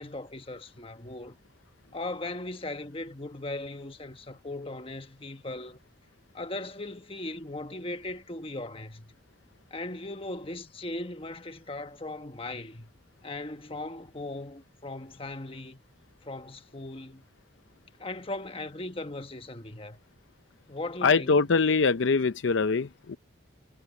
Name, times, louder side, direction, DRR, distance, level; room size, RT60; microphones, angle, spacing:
voice 1, 0.0-1.4 1.9-5.8 6.3-9.1 9.7-12.9 13.2-15.8 16.2-17.3 18.0-20.0 20.7-21.5, left 2 dB, 30° left, 1.3 m, -38 dB
voice 2, 21.0-23.2, left 4 dB, 70° left, 0.6 m, -23 dB
head